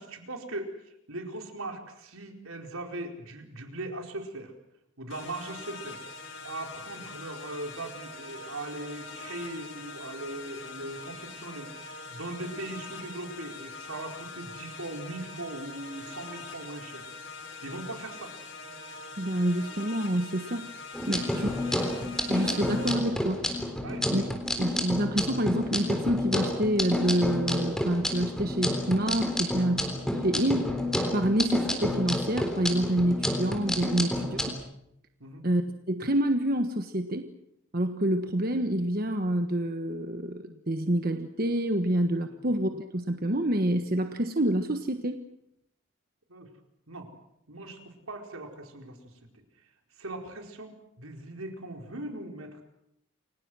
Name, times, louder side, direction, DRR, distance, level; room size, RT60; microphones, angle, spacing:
voice 1, 0.0-4.5 5.0-6.0 6.4-17.1 17.6-18.3 21.1-21.5 23.8-24.1 29.6-29.7 34.0-34.1 35.2-35.4 42.3-42.5 46.3-46.5 46.9-47.1 47.5-49.1 50.0-52.6, right 2 dB, 80° right, 3 dB, 4.6 m, -40 dB
sound 1, 5.1-22.9, left 3 dB, 60° left, 5.2 m, -43 dB
voice 2, 19.2-21.5 22.3-23.4 24.1-24.2 24.6-29.9 30.2-30.8 31.1-34.4 35.4-35.6 35.9-37.3 37.7-45.2, right 1 dB, 45° right, 6 dB, 1.3 m, -27 dB
sound 2, 20.9-34.5, left 1 dB, 5° left, 3.7 m, -30 dB
29.5 x 25.0 x 6.3 m, 0.80 s
head